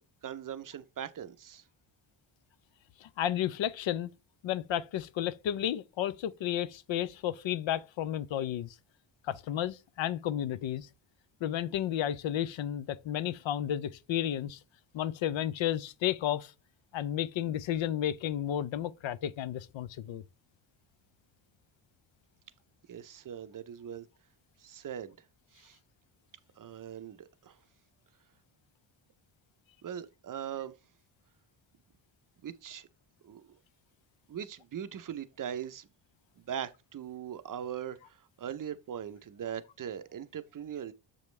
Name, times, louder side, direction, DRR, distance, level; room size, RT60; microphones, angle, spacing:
voice 1, 0.0-1.6 22.9-24.1 24.6-25.2 25.5-25.8 26.6-27.6 29.8-30.7 32.4-32.9 33.2-33.6 34.3-35.9 36.4-40.9, right 9 dB, 45° right, 0.6 m, -40 dB
voice 2, 3.0-4.1 4.4-8.7 9.2-10.9 11.4-14.6 14.9-16.5 16.9-20.2, left 11 dB, 70° left, 0.6 m, -32 dB
7.0 x 5.1 x 3.1 m
wide cardioid pair, 150°, 48 cm